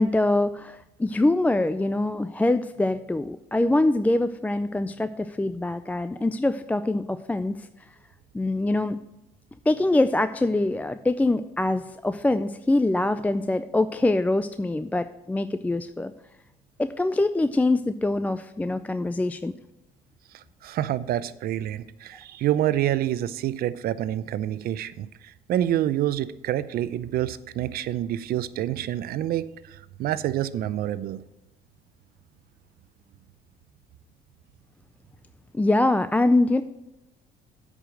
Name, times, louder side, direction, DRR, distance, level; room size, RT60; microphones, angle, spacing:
voice 1, 0.0-7.7 8.3-9.0 9.7-16.1 16.8-19.5 35.5-36.6, left 2 dB, 10° left, 11 dB, 0.3 m, -24 dB
voice 2, 20.3-31.2, right 12 dB, 65° right, 16 dB, 0.6 m, -27 dB
8.7 x 5.1 x 7.7 m, 0.93 s
cardioid pair, 110°, 17 cm